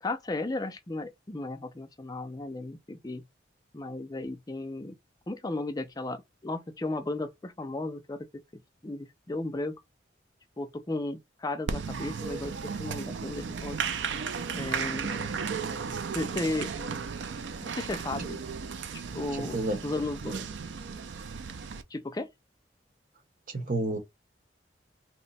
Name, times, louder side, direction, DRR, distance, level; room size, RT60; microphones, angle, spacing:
voice 1, 0.0-3.2 3.7-5.0 5.3-8.3 8.8-9.8 10.6-13.8 14.5-15.4 16.1-16.7 17.7-18.4 19.1-20.4 21.9-22.3, left 2 dB, 20° left, 0.4 m, -35 dB
Applause, 11.7-21.8, right 6 dB, 80° right, 0.5 m, -35 dB
voice 2, 23.5-24.0, right 2 dB, 45° right, 1.1 m, -30 dB
2.9 x 2.1 x 4.0 m
head